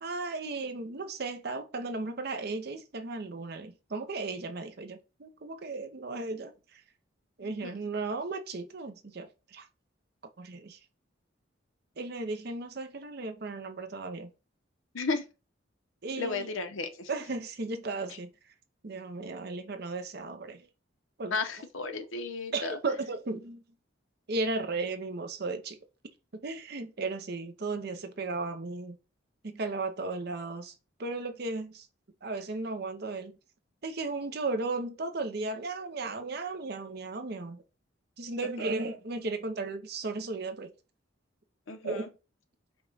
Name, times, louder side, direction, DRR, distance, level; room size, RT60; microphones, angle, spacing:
voice 1, 0.0-6.8 7.4-9.7 10.4-10.8 12.0-14.3 16.0-16.5 17.1-18.3 18.8-20.6 21.2-21.4 22.5-23.6 24.3-25.8 26.4-29.0 29.4-30.7 31.0-31.9 32.2-33.3 33.8-37.6 38.2-40.7 41.8-42.0, right 3 dB, 50° right, 0.6 m, -35 dB
voice 2, 7.4-7.8 14.9-15.2 16.2-17.1 18.1-18.2 21.3-22.8 41.7-42.1, left 4 dB, 80° left, 0.8 m, -34 dB
5.3 x 2.3 x 3.9 m
head